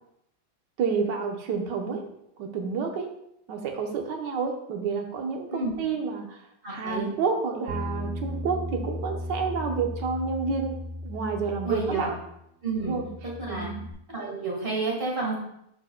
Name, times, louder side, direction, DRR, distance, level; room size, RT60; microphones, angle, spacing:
voice 1, 0.8-2.0 2.4-3.1 3.5-6.4 6.7-10.7 11.0-12.1 12.8-13.1 13.5-13.8, right 5 dB, 75° right, 3 dB, 1.5 m, -29 dB
voice 2, 6.6-7.1 11.6-12.1 12.6-13.0 13.4-13.7 14.1-15.4, right 3 dB, 30° right, -3 dB, 1.8 m, -30 dB
Bass guitar, 7.7-12.4 12.7-13.9, left 1 dB, 55° right, 0.9 m, -36 dB
11.5 x 4.4 x 2.2 m, 0.77 s
omnidirectional pair, 1.9 m